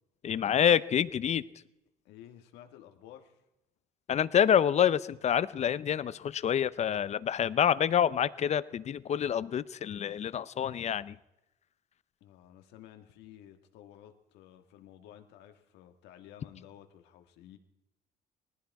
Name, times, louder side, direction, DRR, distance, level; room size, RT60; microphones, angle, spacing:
voice 1, 0.2-1.4 4.1-11.2, left 9 dB, 40° left, 17 dB, 0.6 m, -27 dB
voice 2, 2.0-3.4 12.2-17.6, left 11 dB, 90° left, 6 dB, 1.6 m, -53 dB
19.5 x 14.5 x 4.7 m, 0.92 s
cardioid pair, 110°, 17 cm